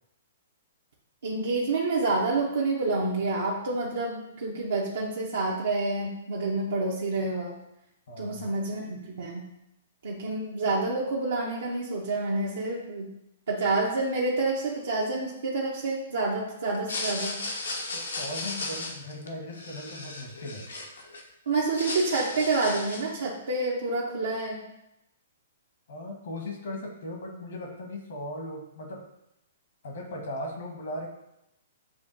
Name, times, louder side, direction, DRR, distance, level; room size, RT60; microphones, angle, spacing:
voice 1, 1.2-7.6 8.2-9.4 10.0-13.1 13.5-17.4 21.5-24.6, right 3 dB, 80° right, -4 dB, 0.8 m, -28 dB
voice 2, 8.1-8.5 17.9-20.6 25.9-29.0 29.8-31.1, left 1 dB, 70° left, 2 dB, 1.2 m, -38 dB
sound 1, 16.7-21.2 21.6-23.2, left 2 dB, 85° left, 0.8 m, -35 dB
7.2 x 2.5 x 2.6 m, 0.83 s
hypercardioid pair, 130°, 0 cm